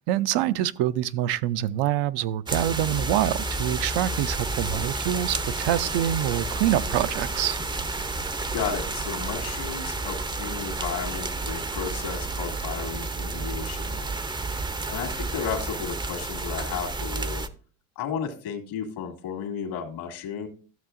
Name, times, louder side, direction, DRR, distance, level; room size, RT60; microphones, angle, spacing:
voice 1, 0.1-7.6, right 13 dB, 65° right, 0.5 m, -25 dB
sound 1, 2.5-17.5, right 3 dB, 10° right, 0.5 m, -31 dB
voice 2, 8.2-14.1 14.9-17.4 18.0-20.5, left 7 dB, 70° left, 2.1 m, -33 dB
12.5 x 6.7 x 2.5 m
supercardioid pair, 80°, 43 cm